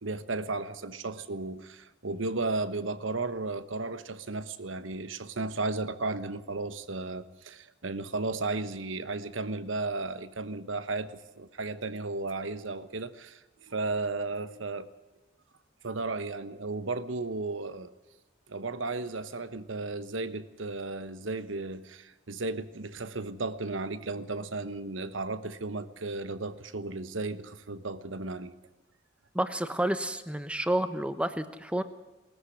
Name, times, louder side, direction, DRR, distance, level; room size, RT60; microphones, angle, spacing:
voice 1, 0.0-14.9 15.8-17.9 18.5-28.5, right 3 dB, 90° right, 13 dB, 1.2 m, -34 dB
voice 2, 29.3-31.8, right 1 dB, 5° right, 11 dB, 1.0 m, -30 dB
20.0 x 14.0 x 10.0 m, 1.1 s
head